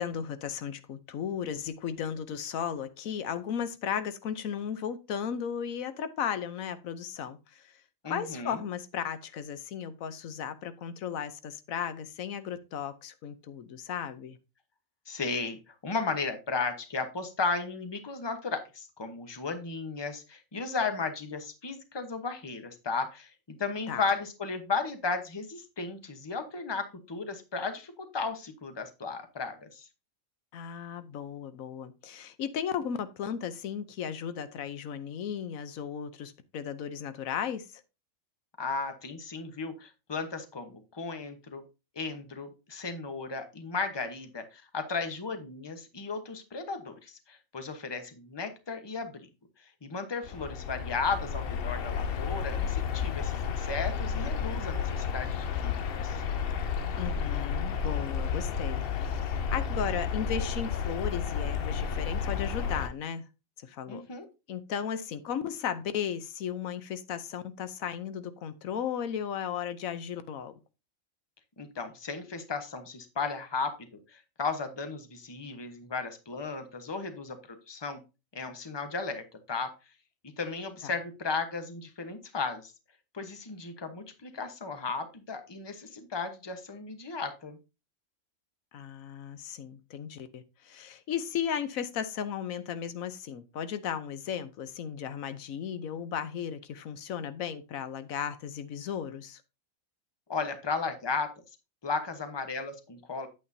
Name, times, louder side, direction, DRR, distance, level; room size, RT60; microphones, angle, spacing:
voice 1, 0.0-7.7 8.1-14.4 23.9-24.0 30.5-37.7 57.0-63.2 63.6-64.0 64.5-70.5 80.8-80.9 88.7-99.4, left 8 dB, 85° left, 1.2 m, -35 dB
voice 2, 8.0-8.6 15.1-23.3 23.6-29.9 38.6-41.6 41.9-49.3 49.6-56.2 63.9-64.3 71.6-78.0 78.3-79.7 80.4-82.7 83.1-87.6 100.3-101.3 101.8-103.3, left 4 dB, 20° left, 1.0 m, -35 dB
sound 1, 50.2-62.9, left 6 dB, 55° left, 0.7 m, -32 dB
8.9 x 8.5 x 2.7 m
omnidirectional pair, 1.4 m